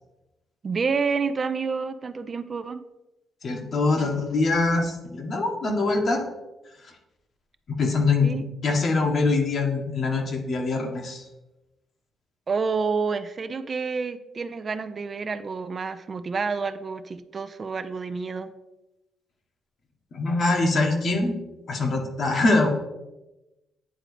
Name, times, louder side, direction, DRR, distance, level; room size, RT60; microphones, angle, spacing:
voice 1, 0.6-2.8 8.2-8.4 12.5-18.5, right 5 dB, 40° right, 11 dB, 0.4 m, -29 dB
voice 2, 3.4-6.2 7.7-8.4 8.6-11.2 20.1-21.3 21.7-22.7, left 3 dB, 50° left, 2 dB, 1.3 m, -23 dB
9.0 x 3.8 x 3.2 m, 0.99 s
cardioid pair, 90°, 0 cm